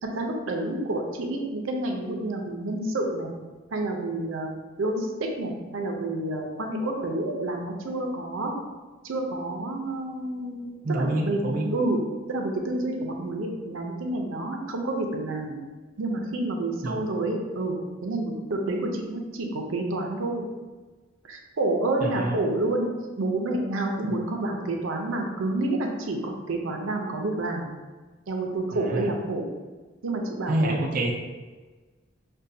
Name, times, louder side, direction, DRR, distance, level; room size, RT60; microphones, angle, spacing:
voice 1, 0.0-3.3 3.7-4.5 4.8-8.5 9.0-11.4 11.7-12.0 12.3-15.6 16.0-17.8 18.0-20.5 21.2-22.9 23.2-27.7 28.3-29.4 30.0-30.8, right 2 dB, 90° right, 2 dB, 0.6 m, -29 dB
voice 2, 10.8-11.7 16.8-17.0 22.0-22.4 28.7-29.1 30.5-31.1, right 1 dB, 45° right, 0 dB, 0.3 m, -27 dB
5.2 x 2.2 x 2.6 m, 1.3 s
head